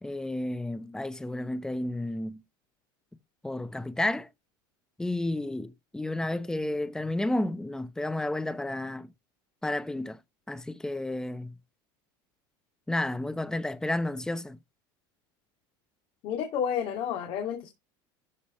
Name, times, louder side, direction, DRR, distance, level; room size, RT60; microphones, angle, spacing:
voice 1, 0.0-2.4 3.4-4.3 5.0-9.1 9.6-10.2 10.5-11.5 12.9-14.6, left 1 dB, 5° left, 0.9 m, -31 dB
voice 2, 16.2-17.7, left 8 dB, 55° left, 2.6 m, -30 dB
13.5 x 5.3 x 4.3 m
supercardioid pair, 120°, 11 cm